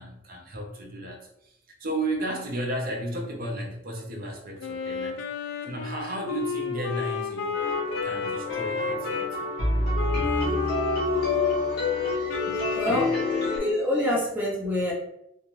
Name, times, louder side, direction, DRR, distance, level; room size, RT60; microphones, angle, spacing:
voice 1, 0.0-5.3 5.6-7.7 8.0-9.6 10.2-10.3 11.0-11.2 12.5-13.1, right 1 dB, 50° right, 2 dB, 0.6 m, -34 dB
Wind instrument woodwind instrument, 4.6-9.3 9.9-13.9, left 6 dB, 70° left, 0.4 m, -32 dB
sound 1, 7.5-13.6, left 2 dB, 50° left, 0.9 m, -27 dB
voice 2, 10.3-10.7 12.1-12.4 12.8-13.1 13.4-14.9, left 1 dB, 10° right, -5 dB, 0.8 m, -27 dB
2.5 x 2.1 x 3.0 m, 0.79 s
head